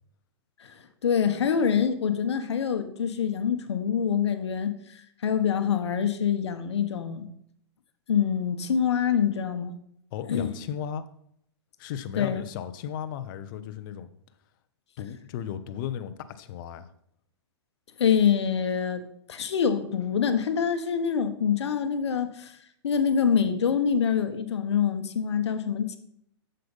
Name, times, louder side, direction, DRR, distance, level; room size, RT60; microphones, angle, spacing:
voice 1, 0.6-7.3 8.1-9.7 10.3-10.5 12.2-12.4 18.0-19.0 19.3-22.6 22.8-26.0, left 7 dB, 75° left, 1.1 m, -25 dB
voice 2, 10.1-11.1 11.8-14.1 15.0-16.9, left 9 dB, 50° left, 0.8 m, -35 dB
7.8 x 6.7 x 5.3 m
hypercardioid pair, 120°, 14 cm